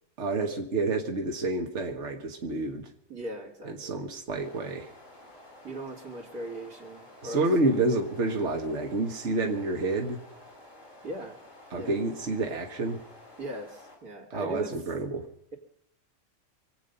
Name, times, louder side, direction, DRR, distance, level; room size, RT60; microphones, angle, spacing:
voice 1, 0.2-2.9 3.6-4.9 7.2-10.2 11.7-13.0 14.3-15.3, right 2 dB, 50° right, 2 dB, 1.8 m, -29 dB
voice 2, 3.1-3.9 5.6-7.9 11.0-11.4 11.7-12.0 13.4-14.7, right 1 dB, 85° right, 0 dB, 3.5 m, -39 dB
sound 1, 4.3-14.0, left 1 dB, 55° left, 4.8 m, -51 dB
25.5 x 8.7 x 5.5 m, 0.74 s
omnidirectional pair, 1.5 m